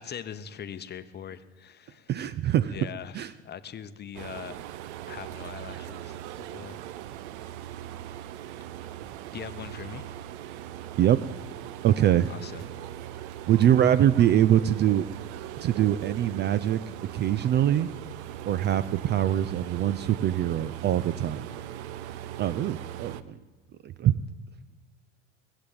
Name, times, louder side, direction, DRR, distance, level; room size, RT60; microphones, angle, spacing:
voice 1, 0.0-2.1 2.7-4.6 5.1-6.8 9.3-10.1 12.3-12.7, left 8 dB, 25° left, 12 dB, 0.9 m, -41 dB
voice 2, 2.1-2.8 3.1-3.3 11.0-11.2 11.8-12.3 13.5-15.1 15.6-16.8 17.1-17.9 18.4-21.5 22.4-23.3 23.8-24.2, right 11 dB, 30° right, 17 dB, 0.4 m, -23 dB
sound 1, 4.1-23.2, right 12 dB, 65° right, 0.8 m, -40 dB
20.0 x 7.9 x 8.6 m, 1.3 s
hypercardioid pair, 80°, 37 cm